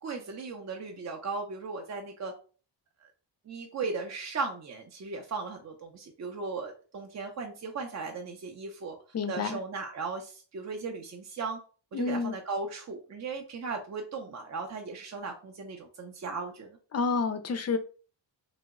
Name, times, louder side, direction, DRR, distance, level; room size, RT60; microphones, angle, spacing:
voice 1, 0.0-2.3 3.0-3.1 3.5-9.0 9.3-11.6 11.9-16.7, right 4 dB, 40° right, 0.5 m, -37 dB
voice 2, 9.1-9.6 11.9-12.3 16.9-17.8, left 4 dB, 35° left, 0.4 m, -29 dB
2.9 x 2.0 x 3.5 m
cardioid pair, 90°, 45 cm